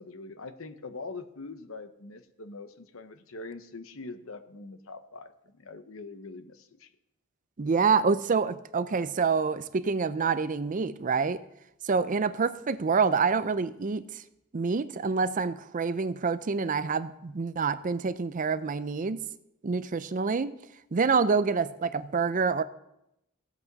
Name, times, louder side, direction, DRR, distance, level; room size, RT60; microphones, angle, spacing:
voice 1, 0.0-6.9, left 3 dB, 70° left, 10 dB, 0.9 m, -43 dB
voice 2, 7.6-11.4 11.8-14.0 14.5-19.2 19.6-20.6 20.9-22.6, right 5 dB, 40° right, 14 dB, 0.5 m, -27 dB
16.0 x 8.3 x 4.0 m, 0.83 s
head